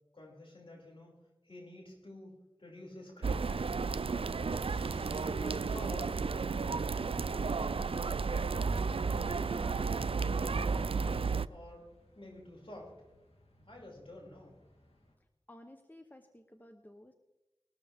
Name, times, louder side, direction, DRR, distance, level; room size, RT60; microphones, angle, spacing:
voice 1, 0.1-1.1 1.4-2.3 2.6-3.8 5.2-6.2 6.5-8.8 9.5-10.7 11.5-11.8 12.1-12.9 13.7-14.5, left 1 dB, 65° left, -3 dB, 6.0 m, -50 dB
sound 1, 3.2-11.5, right 4 dB, 70° right, 0.4 m, -33 dB
sound 2, 4.3-15.2, left 1 dB, 90° left, 2.6 m, -64 dB
Sliding door, 4.4-6.7, right 1 dB, 30° right, 2.0 m, -55 dB
voice 2, 4.7-5.4 15.5-17.1, left 1 dB, 20° left, 6 dB, 1.0 m, -55 dB
20.0 x 13.0 x 3.6 m, 1.0 s
wide cardioid pair, 55°, 10 cm